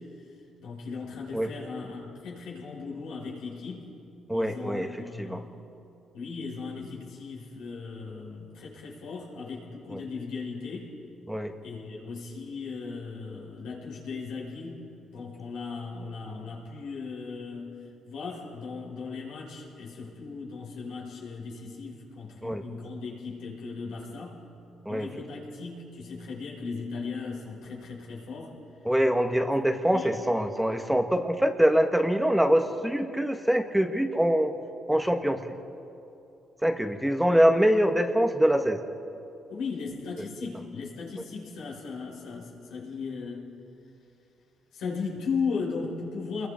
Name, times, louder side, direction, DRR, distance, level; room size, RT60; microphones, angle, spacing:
voice 1, 0.6-3.9 4.3-5.5 6.1-10.9 11.6-14.8 15.1-17.7 18.1-24.4 24.9-28.5 29.9-30.1 39.5-43.4 44.7-46.5, left 4 dB, 85° left, -3 dB, 5.7 m, -37 dB
voice 2, 4.3-4.9 5.2-5.4 9.9-10.0 11.3-11.5 22.4-22.6 24.8-25.1 28.8-34.5 34.9-35.4 36.6-38.8, equal, 5° right, 5 dB, 1.4 m, -24 dB
28.5 x 22.0 x 4.5 m, 2.7 s
cardioid pair, 90°, 0 cm